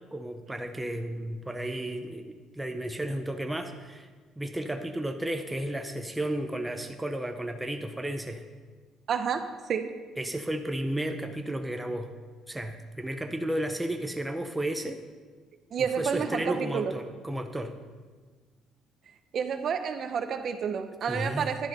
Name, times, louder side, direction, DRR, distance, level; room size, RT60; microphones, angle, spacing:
voice 1, 0.1-4.1 4.4-8.4 10.2-12.1 12.5-15.0 15.8-17.7 21.1-21.5, right 1 dB, 5° right, 5 dB, 0.6 m, -33 dB
voice 2, 9.1-10.0 15.7-16.9 19.3-21.7, right 7 dB, 45° right, 8 dB, 0.8 m, -30 dB
11.0 x 7.8 x 5.4 m, 1.4 s
cardioid pair, 135°, 0 cm